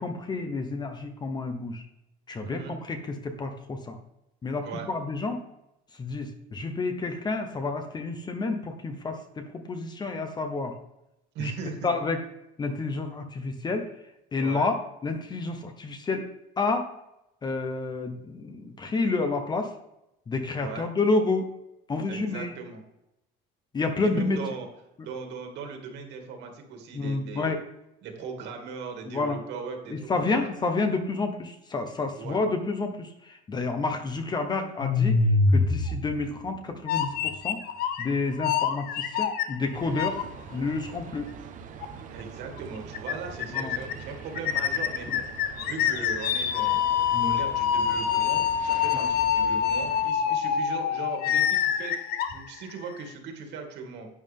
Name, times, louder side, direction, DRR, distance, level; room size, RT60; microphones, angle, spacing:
voice 1, 0.0-1.8 2.3-4.0 4.4-5.4 6.0-10.7 11.4-11.5 11.8-12.2 12.6-13.9 14.3-14.7 15.0-16.3 16.6-16.9 17.4-19.7 20.3-21.5 21.9-22.5 23.7-24.4 26.9-27.6 29.1-29.4 29.9-35.2 35.5-37.6 38.0-40.2 40.5-41.3 43.5-43.8 47.1-47.3 48.9-49.1, left 3 dB, 20° left, 6 dB, 1.0 m, -29 dB
voice 2, 2.4-2.8 4.6-4.9 11.3-11.9 14.4-14.7 20.5-20.9 22.1-22.8 24.0-24.7 25.0-27.6 28.0-30.5 32.1-32.4 42.1-46.8 47.2-54.1, right 5 dB, 60° right, 3 dB, 2.6 m, -39 dB
sound 1, 34.8-36.4 36.9-38.1 38.4-40.2 40.7-40.8 41.8-41.9 42.2-42.3 42.6-42.7 42.9-43.1 43.4-44.0 44.4-53.0, left 7 dB, 45° left, 1.1 m, -25 dB
sound 2, 39.7-50.1, right 6 dB, 40° right, 1.1 m, -43 dB
11.0 x 8.9 x 3.6 m, 0.87 s
cardioid pair, 150°, 21 cm